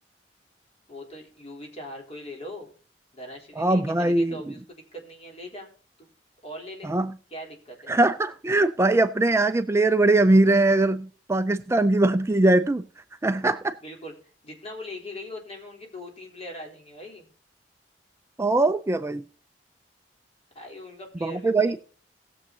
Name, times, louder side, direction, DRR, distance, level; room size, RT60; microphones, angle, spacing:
voice 1, 0.9-2.7 3.1-5.7 6.0-6.1 6.4-6.9 7.3-8.0 13.8-17.3 20.6-21.7, equal, 35° left, 1 dB, 3.6 m, -41 dB
voice 2, 3.6-4.4 6.8-7.1 7.9-12.8 13.2-13.8 18.4-19.2 21.2-21.9, right 2 dB, 15° right, 10 dB, 0.4 m, -21 dB
19.0 x 7.3 x 2.8 m, 0.41 s
head